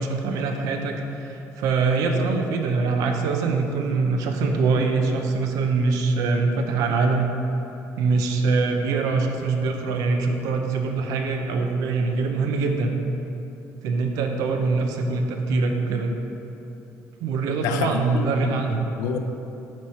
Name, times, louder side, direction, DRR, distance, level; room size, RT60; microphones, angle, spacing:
voice 1, 0.0-7.3 8.0-12.9 13.8-16.1 17.2-18.9, right 4 dB, 75° right, 4 dB, 0.6 m, -23 dB
voice 2, 17.6-19.2, left 6 dB, 80° left, 7 dB, 0.5 m, -29 dB
7.4 x 3.2 x 5.6 m, 3.0 s
cardioid pair, 140°, 6 cm